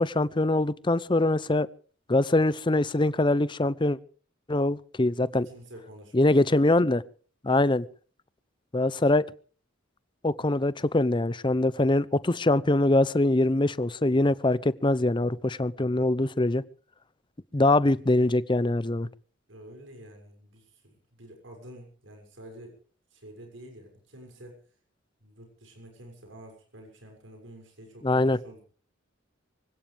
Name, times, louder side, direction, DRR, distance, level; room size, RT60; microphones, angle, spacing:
voice 1, 0.0-1.7 2.1-4.0 4.5-5.5 6.1-7.0 7.4-7.8 8.7-9.3 10.2-16.6 17.5-19.1 28.0-28.4, left 2 dB, 25° left, 18 dB, 0.7 m, -23 dB
voice 2, 5.2-6.6 17.5-17.6 17.9-18.0 19.5-22.8 23.1-24.6 25.2-28.6, right 1 dB, 75° right, 3 dB, 6.6 m, -48 dB
25.0 x 16.5 x 3.4 m, 0.42 s
head